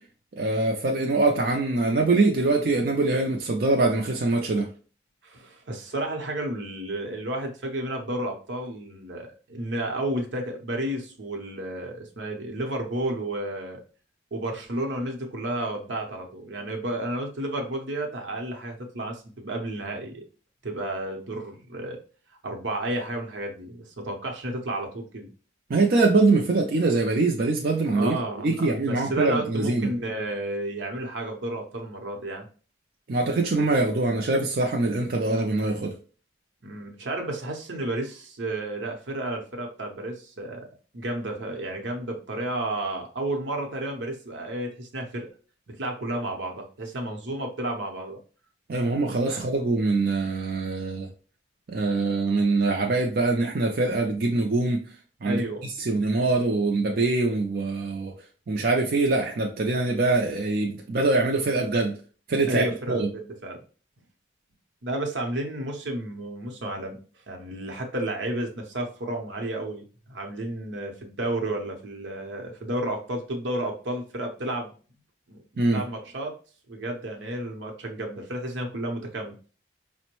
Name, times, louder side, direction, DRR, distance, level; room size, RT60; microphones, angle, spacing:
voice 1, 0.3-4.7 25.7-28.2 28.4-29.9 33.1-35.9 48.7-51.1 51.7-54.8 55.2-55.4 55.8-58.1 58.5-61.9 62.3-63.1 75.6-75.8, right 3 dB, 55° right, 1 dB, 0.5 m, -23 dB
voice 2, 5.2-13.8 14.3-20.2 20.6-22.0 22.4-25.3 27.9-32.5 36.6-40.6 40.9-45.3 45.7-48.2 49.3-49.4 55.2-55.7 62.5-63.6 64.8-67.0 67.3-69.8 70.1-74.7 75.3-76.4 76.7-79.3, right 1 dB, 80° right, 2 dB, 0.8 m, -32 dB
5.0 x 2.1 x 3.0 m, 0.39 s
head